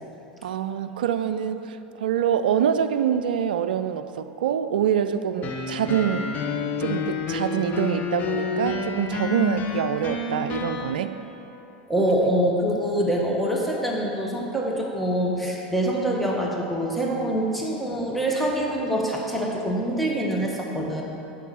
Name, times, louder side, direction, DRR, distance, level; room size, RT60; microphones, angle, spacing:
voice 1, 0.4-6.3 6.8-11.1, right 9 dB, 70° right, 10 dB, 0.3 m, -25 dB
sound 1, 5.4-10.9, left 5 dB, 35° left, 0.8 m, -29 dB
voice 2, 11.9-21.0, right 1 dB, ahead, -3 dB, 1.3 m, -25 dB
8.2 x 5.9 x 4.1 m, 3.0 s
hypercardioid pair, 90°, 5 cm